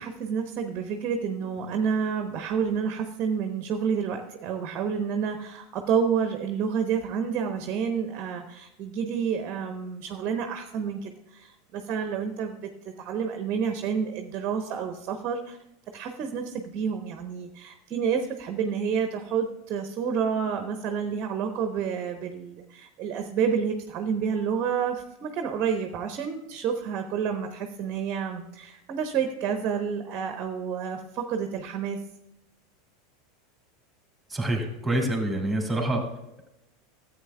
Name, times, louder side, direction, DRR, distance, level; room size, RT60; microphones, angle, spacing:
voice 1, 0.0-12.5 13.0-15.6 15.9-32.0, right 7 dB, 40° right, 6 dB, 0.8 m, -29 dB
voice 2, 34.3-36.0, right 1 dB, 5° right, 1 dB, 2.6 m, -26 dB
14.5 x 8.1 x 2.3 m, 0.88 s
figure-of-eight pair, 85°, 0 cm